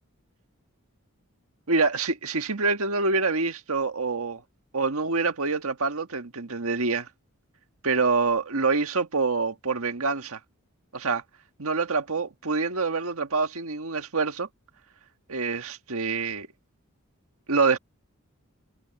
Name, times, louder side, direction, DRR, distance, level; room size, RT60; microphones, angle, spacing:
voice 1, 1.7-4.4 4.7-7.1 7.8-10.4 10.9-11.2 11.6-14.5 15.3-16.5 17.5-17.8, right 4 dB, 75° right, 1.6 m, -26 dB
head